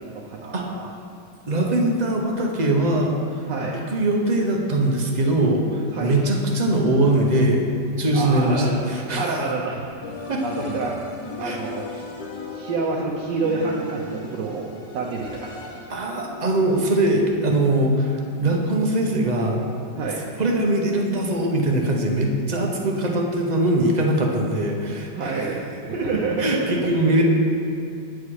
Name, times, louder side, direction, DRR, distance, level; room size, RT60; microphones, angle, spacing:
voice 1, 0.1-0.9 3.5-3.8 5.9-6.2 8.1-8.8 9.2-9.9 10.4-11.0 11.4-12.1 12.5-15.5 18.4-18.6 20.0-20.2 25.1-26.7 27.1-27.2, right 3 dB, 75° right, -3 dB, 1.4 m, -28 dB
voice 2, 1.5-3.4 3.9-7.7 8.0-9.3 10.3-10.4 11.4-11.6 15.9-19.6 20.4-25.5 26.4-27.2, right 1 dB, 35° right, 0 dB, 0.6 m, -21 dB
sound 1, 10.0-16.1, left 2 dB, 80° left, 1.9 m, -36 dB
8.8 x 8.1 x 4.8 m, 2.5 s
omnidirectional pair, 2.0 m